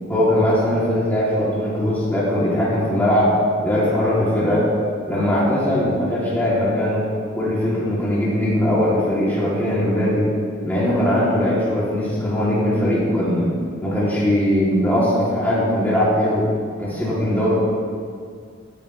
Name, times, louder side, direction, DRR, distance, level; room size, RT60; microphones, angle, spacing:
voice 1, 0.1-3.3 3.6-4.7 5.1-7.1 7.3-10.3 10.6-13.5 13.8-16.5 16.8-17.5, left 1 dB, 10° left, -9 dB, 2.7 m, -20 dB
16.5 x 10.5 x 3.2 m, 2.1 s
head